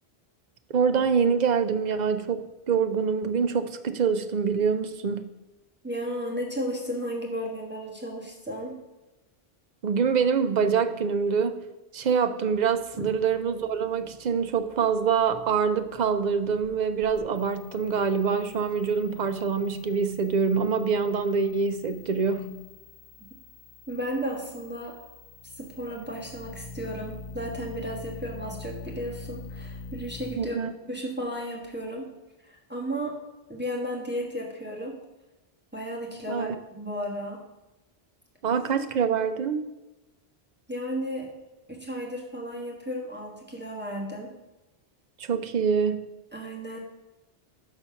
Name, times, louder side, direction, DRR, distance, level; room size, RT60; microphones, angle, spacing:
voice 1, 0.7-5.3 9.8-11.6 11.9-22.5 30.4-30.7 36.3-36.6 38.4-39.7 45.2-46.0, right 6 dB, 50° right, 9 dB, 0.6 m, -25 dB
voice 2, 5.8-8.7 23.9-24.9 25.6-30.6 30.9-32.0 32.4-33.1 33.5-35.0 35.7-37.4 40.7-41.3 41.7-44.3 46.3-46.8, equal, 10° right, -2 dB, 1.3 m, -34 dB
sound 1, 12.5-30.4, left 4 dB, 35° left, 0.8 m, -46 dB
6.0 x 5.6 x 5.7 m, 1.1 s
omnidirectional pair, 1.1 m